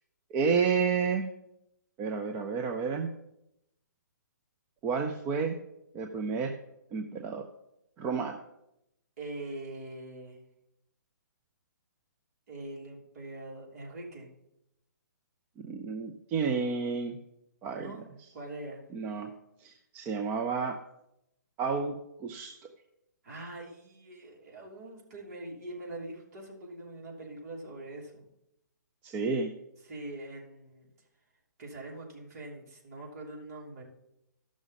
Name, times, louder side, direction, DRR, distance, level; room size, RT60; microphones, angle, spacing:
voice 1, 0.3-1.3 2.0-3.1 4.8-5.6 5.9-6.6 6.9-7.4 8.0-8.4 15.6-17.2 17.6-18.0 18.9-19.3 19.6-20.8 21.6-22.5 29.0-29.5, right 5 dB, 15° right, 3 dB, 0.5 m, -30 dB
voice 2, 9.2-10.4 12.5-14.3 17.7-18.0 18.3-18.8 23.2-28.3 29.8-30.9 31.6-33.8, right 2 dB, 50° right, -2 dB, 2.9 m, -43 dB
14.0 x 6.1 x 4.0 m, 0.84 s
hypercardioid pair, 160°, 10 cm